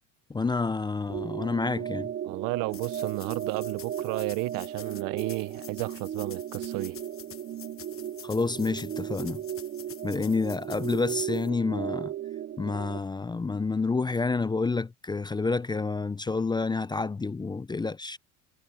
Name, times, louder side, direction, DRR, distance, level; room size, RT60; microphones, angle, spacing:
voice 1, 0.3-2.1 8.2-9.4 10.0-12.1 12.6-18.2, left 4 dB, 10° left, 0.6 m, -29 dB
sound 1, 1.1-13.0, right 10 dB, 30° right, 0.7 m, -36 dB
voice 2, 2.2-7.0, right 24 dB, 65° right, 0.9 m, -33 dB
sound 2, 2.7-11.5, left 10 dB, 40° left, 1.3 m, -48 dB
supercardioid pair, 90°, 35 cm